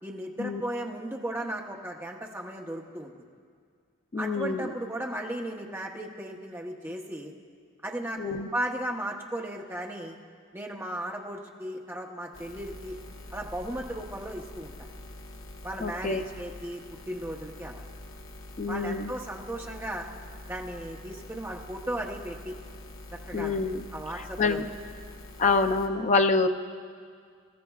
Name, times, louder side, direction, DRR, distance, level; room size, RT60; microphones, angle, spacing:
voice 1, 0.0-3.1 4.2-7.3 7.8-10.2 10.5-13.0 13.3-14.9 15.6-17.9 18.7-20.1 20.5-22.5 23.1-23.6 23.9-24.7, right 1 dB, 10° right, 0 dB, 0.8 m, -36 dB
voice 2, 4.1-4.7 8.2-8.5 15.8-16.2 18.6-19.1 23.3-23.8 24.4-24.6 25.4-26.5, left 4 dB, 30° left, 6 dB, 0.4 m, -26 dB
sound 1, 12.3-25.9, left 1 dB, 65° left, 1.1 m, -45 dB
23.0 x 13.5 x 2.3 m, 2.1 s
head